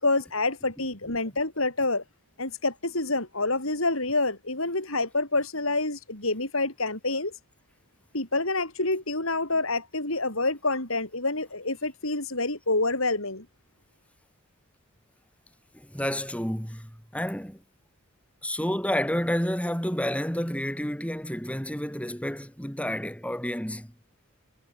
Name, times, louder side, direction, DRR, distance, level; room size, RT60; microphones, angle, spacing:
voice 1, 0.0-2.0 2.4-7.3 8.1-13.5, left 2 dB, 70° left, 7.3 m, -27 dB
voice 2, 15.7-17.6 18.4-23.9, equal, 5° left, 7.7 m, -30 dB
head